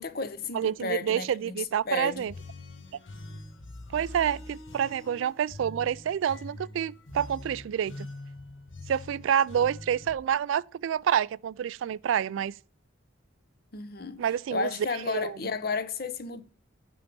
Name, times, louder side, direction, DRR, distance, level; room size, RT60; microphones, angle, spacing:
voice 1, 0.0-2.2 13.7-14.2 14.5-16.4, left 4 dB, 50° left, 0.8 m, -33 dB
voice 2, 0.5-2.3 3.9-8.1 8.9-12.6 14.2-15.4, right 9 dB, 75° right, 0.3 m, -28 dB
sound 1, 2.1-10.1, left 2 dB, 75° left, 1.7 m, -44 dB
9.6 x 3.9 x 6.8 m
head